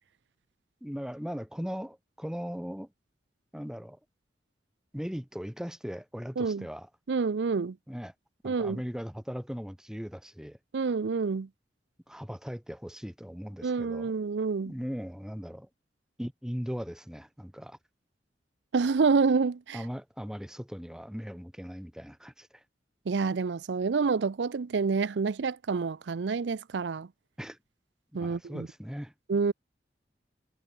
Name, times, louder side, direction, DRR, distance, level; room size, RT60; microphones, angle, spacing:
voice 1, 0.8-2.9 3.5-4.0 4.9-6.9 7.9-8.1 8.4-10.6 12.1-14.1 14.6-15.7 16.2-17.8 19.7-22.6 27.4-27.6 28.1-29.1, equal, 5° right, 1.4 m, -38 dB
voice 2, 7.1-7.8 8.4-8.8 10.7-11.5 13.6-14.7 18.7-19.8 23.1-27.1 28.1-28.7 29.3-29.5, right 4 dB, 85° right, 0.5 m, -28 dB
head